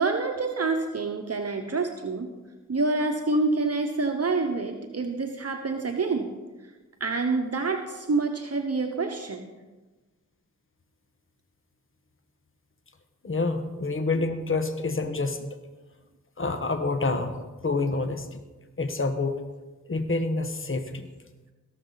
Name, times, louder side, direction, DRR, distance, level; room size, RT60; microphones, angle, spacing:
voice 1, 0.0-2.3 2.7-6.3 7.0-9.5 14.2-14.3, right 3 dB, 50° right, 4 dB, 1.0 m, -27 dB
voice 2, 13.2-15.4 16.4-18.4 18.8-19.4 19.9-21.1, left 3 dB, 40° left, 7 dB, 1.2 m, -27 dB
17.5 x 6.7 x 4.0 m, 1.2 s
cardioid pair, 40°, 32 cm